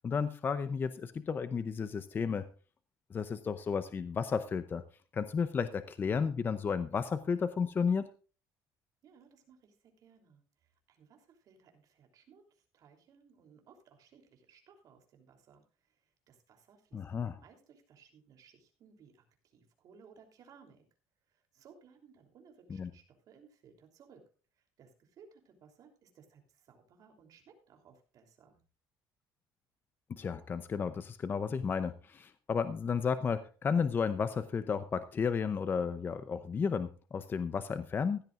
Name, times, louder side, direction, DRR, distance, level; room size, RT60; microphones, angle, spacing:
voice 1, 0.0-2.4 3.1-4.8 5.1-8.1 16.9-17.4 22.8-22.9 30.1-38.2, left 6 dB, 25° left, 12 dB, 0.6 m, -33 dB
voice 2, 9.0-20.8 21.3-24.2 24.5-28.6, right 6 dB, 50° right, 3 dB, 3.2 m, -61 dB
16.0 x 12.0 x 2.5 m, 0.37 s
cardioid pair, 150°, 8 cm